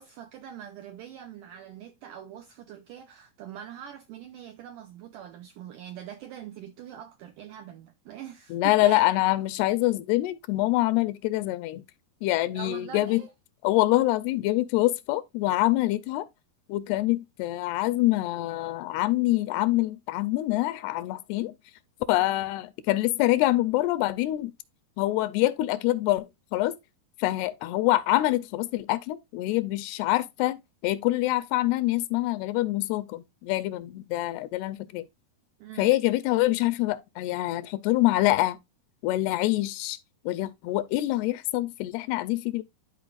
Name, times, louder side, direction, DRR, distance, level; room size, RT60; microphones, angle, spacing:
voice 1, 0.0-9.1 12.6-13.3 35.6-36.0, right 10 dB, 80° right, 1.9 m, -43 dB
voice 2, 8.5-11.8 12.2-13.2 13.6-16.3 16.7-21.6 22.1-24.5 25.0-26.3 26.5-26.7 27.2-35.1 35.8-38.6 39.0-40.0 40.3-42.6, left 17 dB, 85° left, 2.6 m, -25 dB
12.0 x 4.6 x 2.4 m
omnidirectional pair, 4.5 m